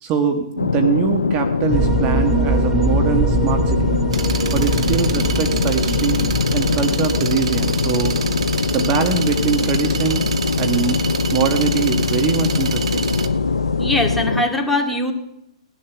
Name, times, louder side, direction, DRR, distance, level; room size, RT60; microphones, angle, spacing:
voice 1, 0.0-4.0 4.5-6.2 6.5-8.1 8.7-10.3 10.6-11.0 11.3-13.1, right 7 dB, 30° right, 6 dB, 1.5 m, -23 dB
sound 1, 0.6-14.4, left 4 dB, 85° left, 0.8 m, -21 dB
sound 2, 1.7-14.3, right 2 dB, 10° right, 1.0 m, -26 dB
sound 3, 4.1-13.3, right 6 dB, 65° right, 1.4 m, -29 dB
voice 2, 13.8-15.1, left 1 dB, 5° left, 2 dB, 2.4 m, -21 dB
18.0 x 11.0 x 7.1 m, 0.81 s
figure-of-eight pair, 120°, 3 cm